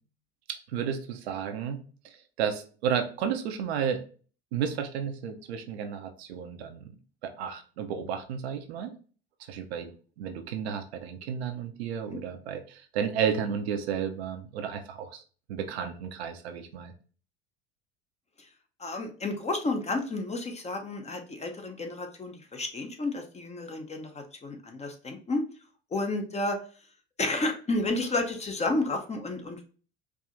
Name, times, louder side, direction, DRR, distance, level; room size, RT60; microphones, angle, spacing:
voice 1, 0.5-4.0 4.5-6.9 7.2-8.9 9.5-9.9 10.2-15.2 15.5-16.9, right 8 dB, 75° right, 5 dB, 0.7 m, -32 dB
voice 2, 18.8-25.4 25.9-26.6 27.2-29.6, left 2 dB, 20° left, 4 dB, 0.8 m, -31 dB
4.7 x 2.7 x 2.6 m, 0.39 s
hypercardioid pair, 70°, 32 cm